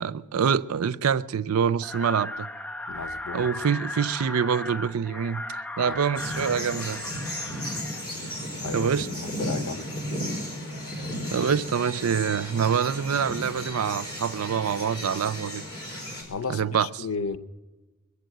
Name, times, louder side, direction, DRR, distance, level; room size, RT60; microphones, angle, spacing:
voice 1, 0.0-2.5 3.3-7.1 8.7-9.1 11.3-15.6 16.5-16.9, right 7 dB, 85° right, 0.5 m, -26 dB
sound 1, 1.8-8.0, left 1 dB, 5° left, 0.8 m, -37 dB
voice 2, 2.9-3.4 5.8-6.0 8.6-8.9 9.4-10.0 16.3-17.4, left 4 dB, 80° left, 0.7 m, -33 dB
sound 2, 6.2-16.2, equal, 20° left, 5.0 m, -34 dB
22.0 x 8.2 x 7.7 m
head